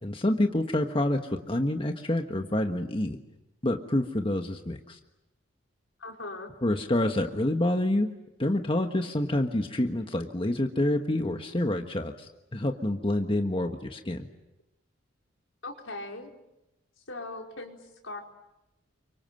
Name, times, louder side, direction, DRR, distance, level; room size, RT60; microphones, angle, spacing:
voice 1, 0.0-3.2 3.6-5.0 6.6-8.1 8.4-14.3, left 1 dB, 25° left, 4 dB, 1.4 m, -27 dB
voice 2, 6.0-6.5 15.6-16.3 17.1-18.2, left 2 dB, 80° left, 1 dB, 5.0 m, -39 dB
29.0 x 25.0 x 7.7 m, 0.92 s
head